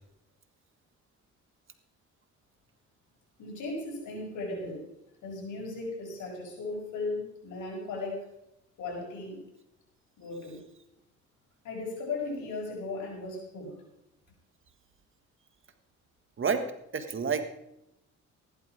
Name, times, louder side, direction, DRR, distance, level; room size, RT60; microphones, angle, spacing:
voice 1, 3.4-4.8 5.2-8.3 8.8-9.4 10.2-10.6 11.6-13.8, left 3 dB, 80° left, -1 dB, 6.3 m, -36 dB
voice 2, 16.9-17.4, right 6 dB, 40° right, 8 dB, 1.6 m, -28 dB
15.0 x 11.5 x 4.9 m, 0.82 s
cardioid pair, 90°, 30 cm